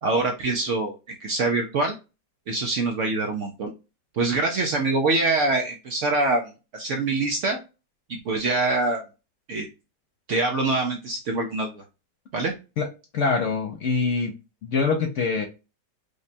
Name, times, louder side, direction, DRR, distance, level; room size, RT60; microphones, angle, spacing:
voice 1, 0.0-1.9 2.5-3.7 4.1-7.6 8.1-9.0 9.5-9.7 10.3-11.8 12.3-12.5, right 3 dB, 70° right, 0.7 m, -24 dB
voice 2, 13.1-14.3 14.6-15.5, left 4 dB, 70° left, 0.7 m, -24 dB
5.0 x 2.2 x 2.6 m
omnidirectional pair, 1.9 m